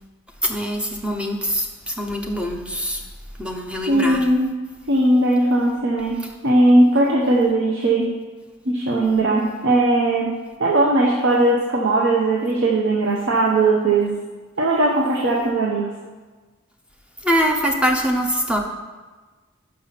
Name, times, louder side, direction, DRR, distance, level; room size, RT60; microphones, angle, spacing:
voice 1, 0.4-3.0 3.4-4.3 17.2-18.6, equal, 5° right, 1 dB, 0.7 m, -23 dB
voice 2, 3.9-4.5 4.9-6.2 6.4-8.1 8.7-14.1 14.6-15.9, right 2 dB, 60° right, -3 dB, 0.8 m, -18 dB
5.5 x 5.5 x 5.8 m, 1.3 s
head